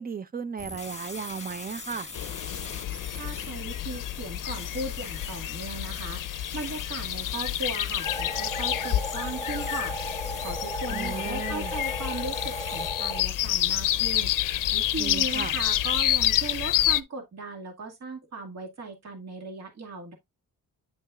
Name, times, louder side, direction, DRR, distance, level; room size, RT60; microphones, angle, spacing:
voice 1, 0.0-2.1 10.9-11.7 15.0-15.6, right 6 dB, 25° right, 0.8 m, -35 dB
sound 1, 0.6-12.9, left 3 dB, 20° left, 1.7 m, -43 dB
sound 2, 2.1-17.0, left 13 dB, 70° left, 0.6 m, -29 dB
voice 2, 3.2-14.3 14.7-20.1, right 3 dB, 50° right, 2.1 m, -37 dB
sound 3, 8.0-13.2, equal, 5° left, 1.4 m, -35 dB
9.9 x 5.4 x 2.4 m
cardioid pair, 105°, 34 cm